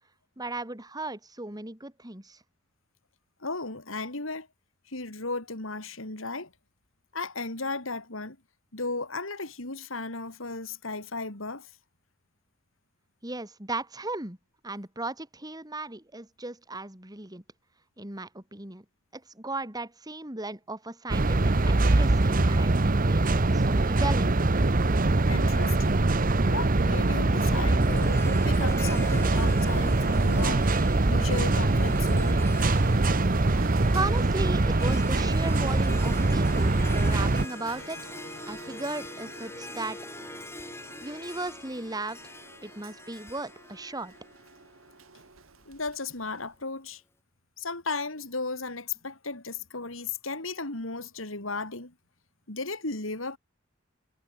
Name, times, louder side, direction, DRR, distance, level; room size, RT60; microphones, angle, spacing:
voice 1, 0.4-2.4 13.2-14.4 14.6-17.4 18.0-18.8 19.1-24.4 33.9-38.1 38.5-40.0 41.0-42.3 42.6-44.1, right 2 dB, 20° right, 3.2 m, -36 dB
voice 2, 3.4-4.5 4.9-6.5 7.1-8.4 8.7-11.7 25.3-26.1 26.5-30.7 31.0-32.4 45.7-47.0 47.6-51.9 52.5-53.4, left 3 dB, 80° left, 4.2 m, -35 dB
sound 1, 21.1-37.4, right 2 dB, 45° right, 1.0 m, -23 dB
Harp, 27.8-45.1, left 2 dB, 15° left, 4.2 m, -44 dB
Printer, 29.0-46.6, right 4 dB, 85° right, 2.4 m, -48 dB
head